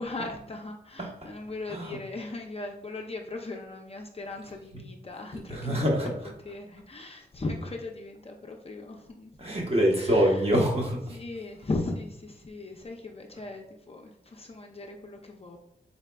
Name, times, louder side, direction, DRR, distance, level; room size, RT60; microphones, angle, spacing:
voice 1, 0.0-5.8 6.4-9.3 9.9-10.5 11.1-15.6, left 2 dB, 35° left, 2 dB, 0.4 m, -38 dB
voice 2, 5.5-6.3 9.4-11.2, equal, 35° right, -1 dB, 0.9 m, -25 dB
4.1 x 3.5 x 2.2 m, 0.73 s
wide cardioid pair, 100°, 18 cm